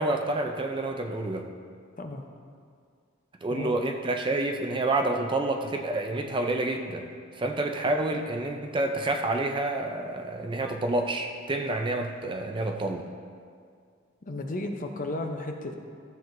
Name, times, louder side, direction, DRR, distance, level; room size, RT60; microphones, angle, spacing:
voice 1, 0.0-1.5 3.4-7.1 7.3-13.1, right 2 dB, 25° right, 4 dB, 0.5 m, -28 dB
voice 2, 14.3-15.7, left 2 dB, 40° left, 4 dB, 0.7 m, -33 dB
14.0 x 7.6 x 2.6 m, 2.2 s
head